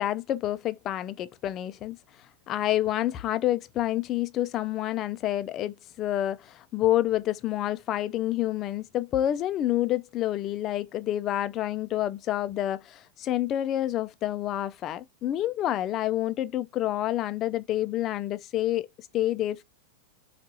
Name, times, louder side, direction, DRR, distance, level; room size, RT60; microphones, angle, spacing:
voice 1, 0.0-2.0 2.5-19.6, left 13 dB, 35° left, 0.4 m, -28 dB
4.6 x 2.4 x 2.8 m
figure-of-eight pair, 90°, 0 cm